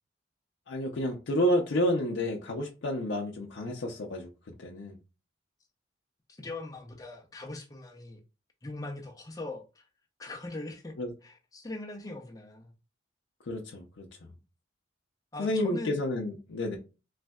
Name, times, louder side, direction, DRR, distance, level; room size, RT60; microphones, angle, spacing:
voice 1, 0.7-4.3 4.6-4.9 11.0-11.1 13.5-14.1 15.4-16.8, left 1 dB, 75° left, 0.5 m, -30 dB
voice 2, 6.4-8.2 8.6-9.8 10.2-12.7 15.3-16.0, left 2 dB, 20° left, 0.6 m, -41 dB
3.3 x 2.6 x 2.2 m
head